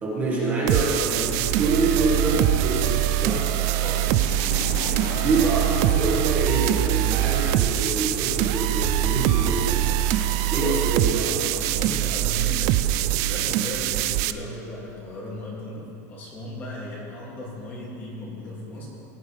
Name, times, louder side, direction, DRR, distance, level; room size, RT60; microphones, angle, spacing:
voice 1, 0.0-3.5 5.2-9.9 10.5-11.3, right 3 dB, 20° right, -6 dB, 1.7 m, -26 dB
sound 1, 0.6-10.9, left 6 dB, 90° left, 1.0 m, -39 dB
sound 2, 0.7-14.3, right 13 dB, 40° right, 0.3 m, -23 dB
voice 2, 3.8-4.5 11.2-18.9, left 1 dB, 25° left, -5 dB, 2.5 m, -36 dB
17.0 x 9.8 x 3.4 m, 2.8 s
supercardioid pair, 175°, 9 cm